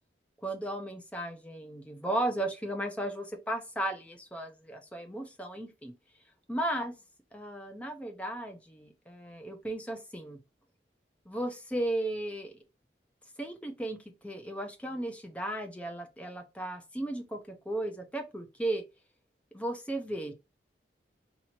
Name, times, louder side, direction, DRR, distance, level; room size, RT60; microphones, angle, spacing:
voice 1, 0.4-5.9 6.5-6.9 7.3-10.4 11.3-12.6 13.4-14.0 14.2-18.8 19.5-20.3, right 1 dB, 5° left, 0.6 m, -35 dB
3.0 x 2.7 x 4.2 m
head